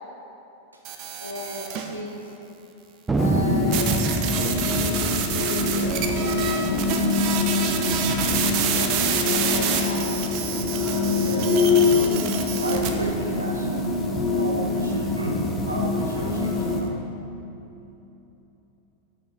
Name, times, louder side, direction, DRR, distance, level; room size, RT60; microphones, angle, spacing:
sound 1, 0.8-1.9 3.7-12.9, right 8 dB, 40° right, 0.7 m, -28 dB
voice 1, 1.2-2.3 3.1-8.0 8.4-10.1, left 1 dB, 85° left, -2 dB, 0.7 m, -36 dB
Thunder, 3.1-7.9 8.2-8.3 8.5-9.0 9.5-10.7, right 2 dB, 10° right, 0.4 m, -28 dB
sound 2, 3.2-16.8, left 3 dB, 15° left, 1.0 m, -25 dB
voice 2, 11.2-17.0, right 2 dB, 80° right, 1 dB, 0.5 m, -33 dB
6.4 x 6.1 x 5.8 m, 3.0 s
figure-of-eight pair, 90°, 0 cm